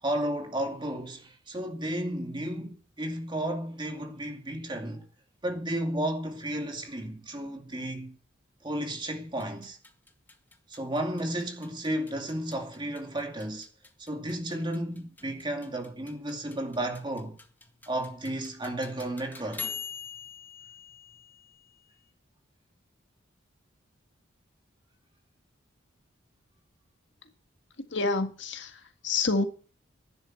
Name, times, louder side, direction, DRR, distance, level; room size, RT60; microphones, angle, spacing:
voice 1, 0.0-5.0 5.4-8.2 8.6-9.8 10.7-13.7 14.0-17.4 17.9-19.7, right 1 dB, 25° right, 2.4 m, -33 dB
sound 1, 9.3-22.0, left 6 dB, 10° left, 1.7 m, -45 dB
voice 2, 27.9-29.5, left 3 dB, 65° left, 1.8 m, -28 dB
11.5 x 10.5 x 7.7 m
head